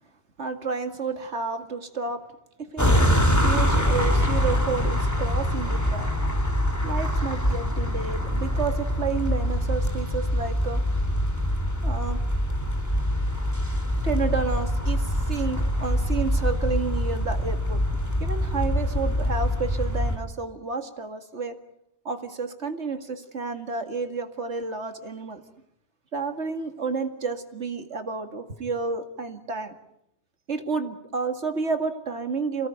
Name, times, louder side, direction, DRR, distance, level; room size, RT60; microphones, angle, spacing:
voice 1, 0.4-2.2 2.6-2.9 3.4-6.1 6.8-10.8 11.8-12.2 14.0-17.8 18.2-21.6 22.0-25.4 26.1-29.7 30.5-32.7, right 4 dB, 90° right, 7 dB, 2.5 m, -30 dB
sound 1, 2.8-20.2, equal, 15° left, 3.0 m, -24 dB
28.5 x 18.0 x 9.3 m, 0.79 s
omnidirectional pair, 1.1 m